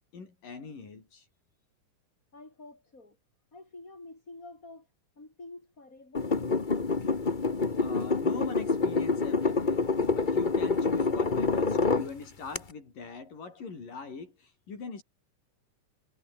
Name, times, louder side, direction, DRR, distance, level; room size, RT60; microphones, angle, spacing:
voice 1, 0.1-1.3 7.8-15.0, left 4 dB, 85° left, 7.5 m, -41 dB
voice 2, 2.3-3.2 3.5-4.9 5.2-6.4, left 2 dB, 25° left, 8.1 m, -48 dB
sound 1, 6.1-12.1 12.5-12.6, left 4 dB, 60° left, 0.5 m, -27 dB
omnidirectional pair, 3.7 m